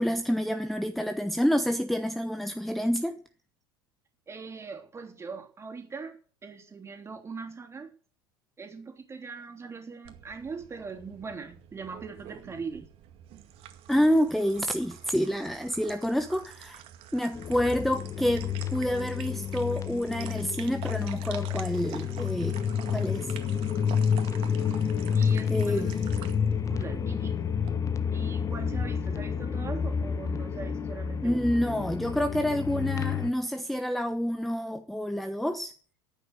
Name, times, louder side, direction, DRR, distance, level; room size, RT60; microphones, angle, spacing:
voice 1, 0.0-3.1 13.9-16.8 17.1-22.6 22.9-23.3 25.5-25.9 31.2-35.7, equal, ahead, 1.0 m, -28 dB
voice 2, 4.3-7.9 8.6-12.9 25.1-26.0 26.4-27.4 28.1-31.5, right 5 dB, 20° right, 3.2 m, -41 dB
sound 1, 10.0-27.7, right 11 dB, 45° right, 2.1 m, -47 dB
sound 2, 17.3-33.3, left 7 dB, 25° left, 1.4 m, -29 dB
14.0 x 9.3 x 6.6 m
figure-of-eight pair, 75°, 13 cm